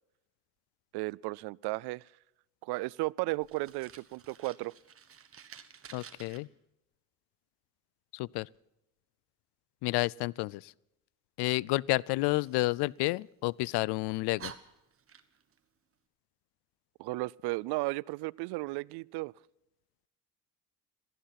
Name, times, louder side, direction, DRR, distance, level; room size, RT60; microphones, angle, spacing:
voice 1, 0.9-2.1 2.6-4.7 17.0-19.3, right 22 dB, 80° right, 0.5 m, -34 dB
Fire, 3.4-6.4 12.3-13.5 14.0-14.1 14.4-15.6, right 7 dB, 35° right, 1.4 m, -51 dB
voice 2, 5.9-6.5 8.1-8.5 9.8-10.7 11.4-14.5, left 21 dB, 80° left, 0.5 m, -30 dB
16.5 x 14.5 x 5.8 m
cardioid pair, 105°, 39 cm